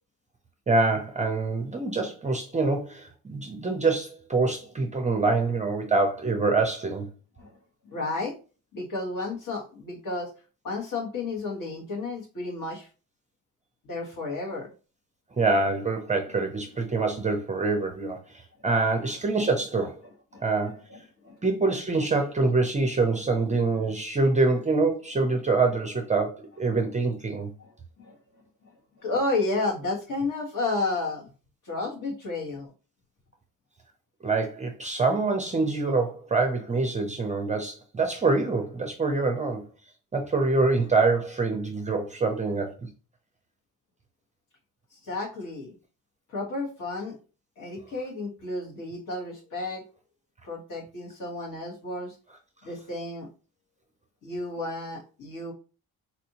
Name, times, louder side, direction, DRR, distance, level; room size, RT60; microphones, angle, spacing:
voice 1, 0.7-7.1 15.4-19.9 20.4-20.8 21.4-27.5 34.2-39.6 40.1-42.7, right 3 dB, 20° right, 0.5 m, -25 dB
voice 2, 7.8-8.4 8.7-10.3 10.6-12.9 13.8-14.7 18.9-19.1 20.3-21.4 27.6-28.2 29.0-31.3 31.6-32.7 44.9-45.7 46.3-47.2 47.6-49.8 50.4-52.2 52.6-53.3 54.2-55.5, left 2 dB, 55° left, 1.5 m, -32 dB
4.2 x 2.6 x 2.8 m
cardioid pair, 145°, 37 cm